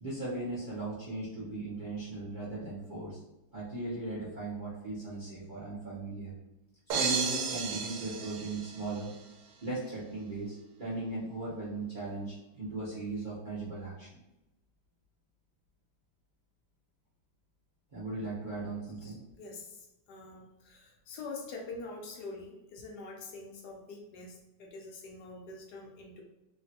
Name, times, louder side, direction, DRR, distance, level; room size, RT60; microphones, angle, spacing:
voice 1, 0.0-3.2 3.5-6.3 6.9-9.1 9.6-14.2 17.9-19.2, right 2 dB, 50° right, -10 dB, 0.5 m, -38 dB
sound 1, 6.9-9.2, right 6 dB, 75° right, 1.2 m, -33 dB
voice 2, 19.0-26.2, left 3 dB, 70° left, 0 dB, 1.0 m, -45 dB
3.2 x 2.3 x 2.7 m, 0.95 s
omnidirectional pair, 2.2 m